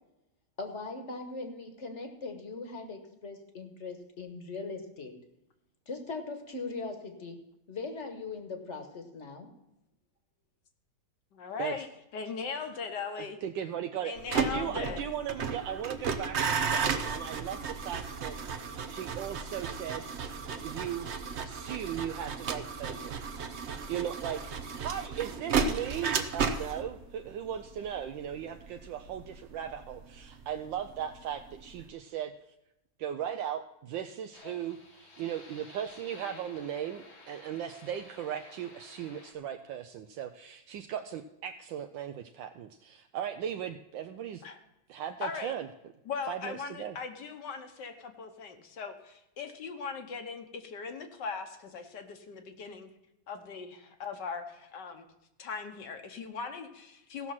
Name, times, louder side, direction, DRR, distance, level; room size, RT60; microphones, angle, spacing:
voice 1, 0.6-5.1 5.9-7.4 7.7-9.5, left 3 dB, 40° left, 5 dB, 1.4 m, -40 dB
voice 2, 11.3-11.9 12.1-13.4 14.0-15.0 44.4-44.6 45.2-45.5 46.0-52.9 53.3-55.0 55.4-57.3, left 5 dB, 65° left, 6 dB, 1.6 m, -39 dB
voice 3, 13.2-20.1 20.6-23.2 23.5-24.4 24.8-32.3 33.0-44.4 44.9-45.7 46.3-47.0, right 9 dB, 75° right, 7 dB, 1.3 m, -37 dB
sound 1, 14.2-31.2 31.4-31.9, right 5 dB, 55° right, 0.8 m, -34 dB
sound 2, 34.3-39.3, left 3 dB, 85° left, 2.7 m, -53 dB
15.5 x 6.2 x 5.7 m, 0.90 s
omnidirectional pair, 2.1 m